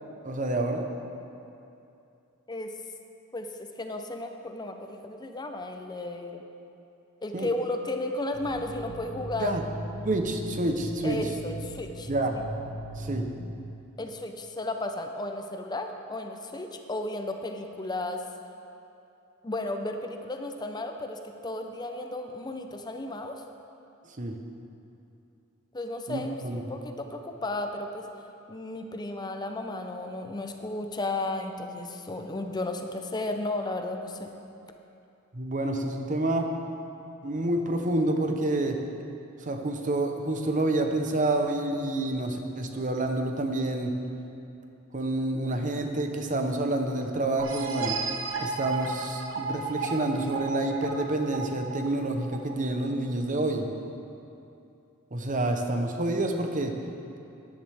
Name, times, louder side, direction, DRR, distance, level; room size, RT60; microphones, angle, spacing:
voice 1, 0.2-0.9 7.3-7.5 9.4-9.6 10.0-11.2 12.1-12.4 13.0-13.3 24.2-24.4 26.1-26.6 35.3-36.5 37.2-38.8 39.4-43.9 44.9-48.0 48.4-53.7 55.1-56.8, right 2 dB, 35° right, 4 dB, 0.9 m, -28 dB
voice 2, 3.3-6.4 7.2-9.6 11.0-12.1 14.0-18.2 19.4-23.4 25.7-28.1 28.5-34.3, left 2 dB, 20° left, 5 dB, 0.6 m, -34 dB
sound 1, 8.3-13.5, equal, 65° left, 1.5 m, -39 dB
sound 2, 47.4-52.9, right 4 dB, 60° right, 1.0 m, -34 dB
14.0 x 11.0 x 3.5 m, 2.7 s
head